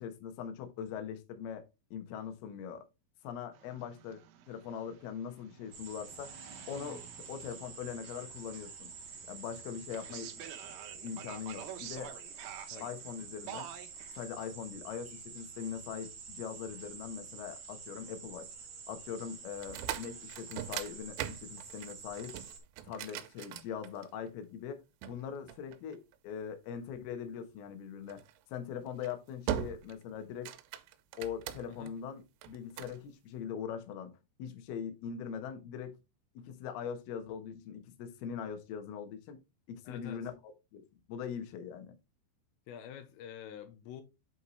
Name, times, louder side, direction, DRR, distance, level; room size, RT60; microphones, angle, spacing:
voice 1, 0.0-1.6 1.9-2.9 3.2-6.3 6.7-8.9 9.3-10.3 11.0-12.2 12.8-13.7 14.2-18.5 18.9-22.4 22.8-28.2 28.5-30.6 31.2-36.0 36.4-39.4 39.7-40.3 40.7-40.8 41.1-42.0, left 8 dB, 70° left, 2.8 m, -41 dB
sound 1, 3.5-14.3, right 10 dB, 75° right, 2.3 m, -50 dB
sound 2, 5.7-22.6, right 5 dB, 55° right, 1.9 m, -48 dB
sound 3, 19.6-24.3 25.0-26.3 28.1-28.4 28.9-29.1 29.5-30.0 30.3-31.9 32.4-33.0, right 11 dB, 90° right, 2.9 m, -40 dB
voice 2, 39.9-40.3 42.7-44.0, left 9 dB, 90° left, 3.0 m, -47 dB
8.3 x 4.5 x 3.1 m
omnidirectional pair, 5.0 m